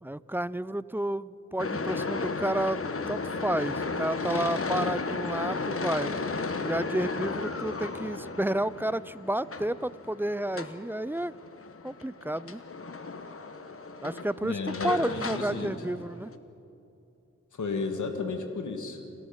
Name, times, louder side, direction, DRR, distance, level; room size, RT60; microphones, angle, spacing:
voice 1, 0.0-6.2 6.6-11.3 11.8-12.6 14.0-16.3, right 1 dB, 5° right, 19 dB, 0.4 m, -31 dB
sound 1, 1.6-16.3, left 3 dB, 50° left, 1.3 m, -34 dB
voice 2, 14.4-15.7 17.5-19.0, left 4 dB, 90° left, 5 dB, 2.0 m, -33 dB
28.0 x 13.0 x 7.3 m, 2.8 s
cardioid pair, 55°, 29 cm